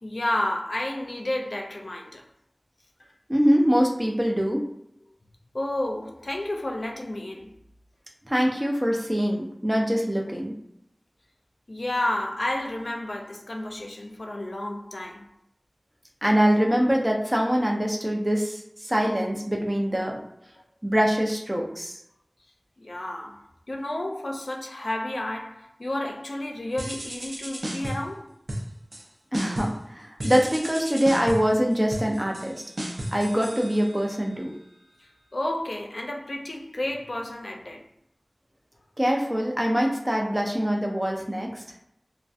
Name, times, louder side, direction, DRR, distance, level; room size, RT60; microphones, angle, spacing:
voice 1, 0.0-2.2 5.5-7.6 11.7-15.3 22.8-28.3 35.3-37.9 40.2-40.3, left 1 dB, 80° left, 0.4 m, -31 dB
voice 2, 3.3-4.6 8.3-10.5 16.2-20.2 20.8-22.0 29.3-32.6 33.1-34.5 39.0-41.6, equal, 20° right, 0.5 m, -24 dB
sound 1, 26.8-28.1 28.5-29.1 29.3-29.8 30.2-34.2, right 1 dB, 80° right, 0.5 m, -34 dB
2.5 x 2.1 x 2.4 m
wide cardioid pair, 40°, 0 cm